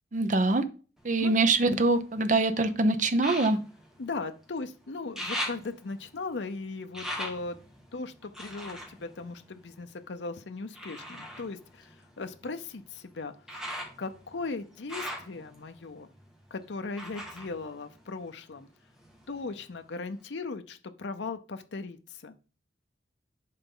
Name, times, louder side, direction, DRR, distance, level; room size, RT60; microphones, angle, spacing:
voice 1, 0.1-0.6 1.0-3.6, right 2 dB, 40° right, 10 dB, 0.7 m, -24 dB
sound 1, 1.0-2.3 3.1-4.7 4.9-10.1 10.7-18.6 18.9-19.7 20.2-20.3, equal, 5° right, 1.6 m, -41 dB
voice 2, 4.0-7.6 7.9-13.6 14.0-16.1 16.5-18.7 19.3-22.3, left 3 dB, 70° left, 8 dB, 0.6 m, -38 dB
10.5 x 4.0 x 3.9 m, 0.36 s
head